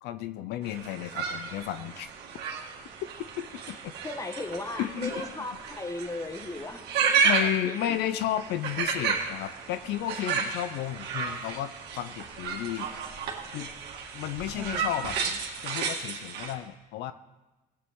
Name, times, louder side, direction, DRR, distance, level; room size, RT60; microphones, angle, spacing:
voice 1, 0.0-2.1 3.4-3.9 4.8-5.2 7.2-12.9 13.5-13.7 14.1-17.1, left 12 dB, 80° left, 12 dB, 0.5 m, -33 dB
sound 1, 0.6-16.5, right 6 dB, 75° right, 1.9 m, -32 dB
voice 2, 4.0-8.0 14.5-15.0, left 2 dB, 20° left, 6 dB, 1.2 m, -37 dB
16.5 x 8.5 x 3.6 m, 1.1 s
cardioid pair, 110°, 17 cm